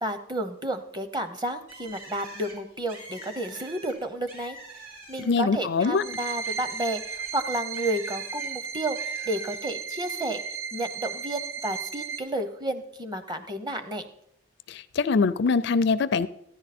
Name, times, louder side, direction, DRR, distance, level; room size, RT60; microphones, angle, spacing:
voice 1, 0.0-4.6 5.1-9.0 9.3-10.4 10.7-14.1, right 1 dB, 20° right, 9 dB, 0.8 m, -31 dB
Bird, 1.7-5.5 5.9-8.5 8.9-9.6, right 2 dB, 70° right, 4.5 m, -46 dB
voice 2, 5.2-6.0 14.7-16.3, left 4 dB, 55° left, 14 dB, 0.4 m, -23 dB
sound 1, 5.9-12.2, right 6 dB, 50° right, 2.0 m, -35 dB
14.5 x 10.5 x 4.2 m, 0.74 s
head